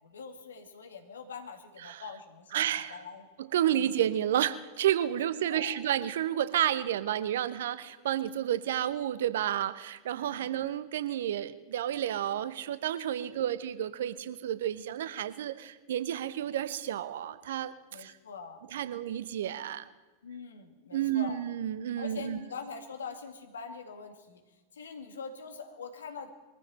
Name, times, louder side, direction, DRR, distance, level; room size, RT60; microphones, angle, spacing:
voice 1, 0.0-2.6 2.9-3.3 3.7-3.8 5.5-5.8 10.1-10.4 13.3-13.6 17.9-18.8 20.2-21.4 22.0-24.4 24.7-26.3, left 5 dB, 70° left, 6 dB, 2.1 m, -44 dB
voice 2, 2.5-3.0 3.4-18.1 18.7-19.8 20.9-22.4, right 11 dB, 60° right, 14 dB, 0.8 m, -31 dB
22.0 x 14.5 x 4.3 m, 1.2 s
figure-of-eight pair, 90°, 0 cm